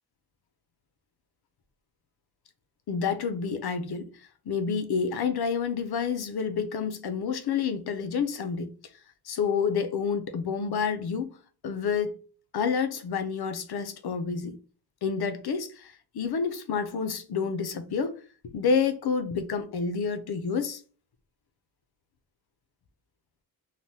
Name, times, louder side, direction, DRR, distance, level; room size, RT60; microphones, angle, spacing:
voice 1, 2.9-4.1 4.5-8.7 9.3-11.3 11.6-12.2 12.5-14.6 15.0-18.2 18.5-20.8, left 6 dB, 85° left, 0.5 m, -29 dB
3.2 x 2.1 x 2.7 m
wide cardioid pair, 130°, 37 cm